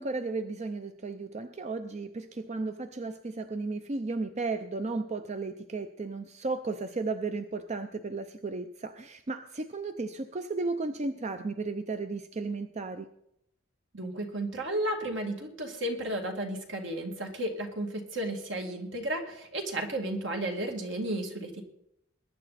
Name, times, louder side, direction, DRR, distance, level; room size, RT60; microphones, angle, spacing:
voice 1, 0.0-13.1, right 3 dB, 35° right, 9 dB, 0.6 m, -34 dB
voice 2, 13.9-21.6, right 1 dB, 70° right, 2 dB, 2.3 m, -33 dB
21.5 x 9.8 x 4.2 m, 0.79 s
head